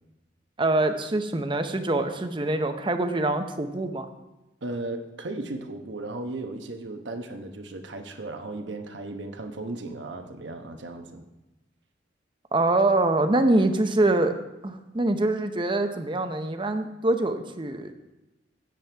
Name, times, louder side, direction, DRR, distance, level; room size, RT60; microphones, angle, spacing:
voice 1, 0.6-4.1 12.5-14.3 14.6-17.9, right 2 dB, 25° right, 8 dB, 0.7 m, -24 dB
voice 2, 4.6-11.2, right 2 dB, 80° right, 6 dB, 1.1 m, -36 dB
13.5 x 9.0 x 3.4 m, 1.0 s
head